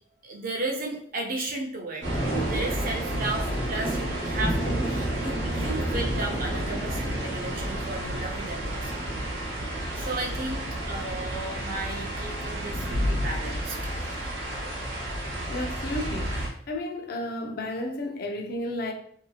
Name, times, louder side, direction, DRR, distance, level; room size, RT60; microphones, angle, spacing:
voice 1, 0.2-9.0 10.0-10.6 10.9-14.2, right 2 dB, 50° right, 0.6 m, -34 dB
sound 1, 2.0-16.5, right 1 dB, 75° right, 0.9 m, -30 dB
voice 2, 15.5-18.9, left 1 dB, 55° left, 0.4 m, -32 dB
2.8 x 2.7 x 2.3 m
head